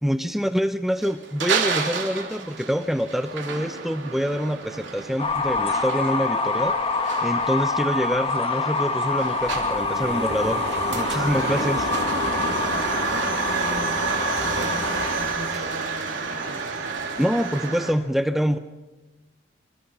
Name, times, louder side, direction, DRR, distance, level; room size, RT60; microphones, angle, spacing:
voice 1, 0.0-6.8 7.2-10.6 10.9-11.9 17.1-18.6, equal, ahead, 9 dB, 0.7 m, -25 dB
sound 1, 1.0-17.9, right 5 dB, 80° right, 3.4 m, -31 dB
sound 2, 5.2-15.5, left 3 dB, 30° left, 1.7 m, -26 dB
sound 3, 9.0-16.3, right 2 dB, 65° right, 3.2 m, -33 dB
voice 2, 12.0-16.6, equal, 65° left, 2 dB, 7.5 m, -39 dB
28.0 x 26.0 x 5.6 m, 1.1 s
head